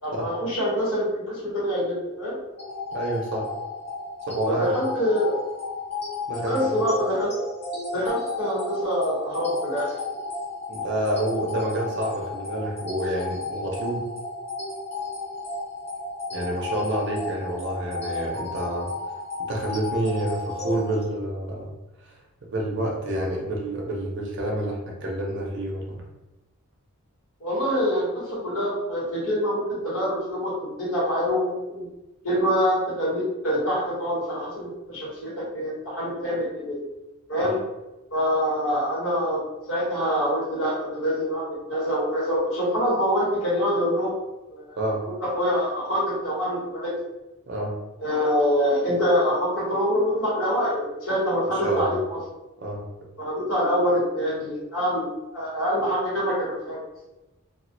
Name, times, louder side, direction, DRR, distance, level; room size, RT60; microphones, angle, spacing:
voice 1, 0.0-2.4 4.5-5.4 6.5-7.3 7.9-9.9 27.4-31.9 32.2-36.8 37.3-37.6 38.1-44.2 44.5-44.8 45.0-46.9 48.0-52.2 53.2-56.8, equal, 75° left, -6 dB, 1.1 m, -25 dB
sound 1, 2.6-21.0, left 3 dB, 30° left, 0.9 m, -33 dB
voice 2, 2.9-3.5 4.3-4.6 6.3-6.6 10.7-14.0 16.3-18.9 19.5-21.7 22.4-26.0 37.4-37.5 44.8-45.0 47.5-47.7 51.5-52.0 52.6-52.8, right 1 dB, 55° right, -2 dB, 0.6 m, -28 dB
2.3 x 2.1 x 2.6 m, 1.0 s
head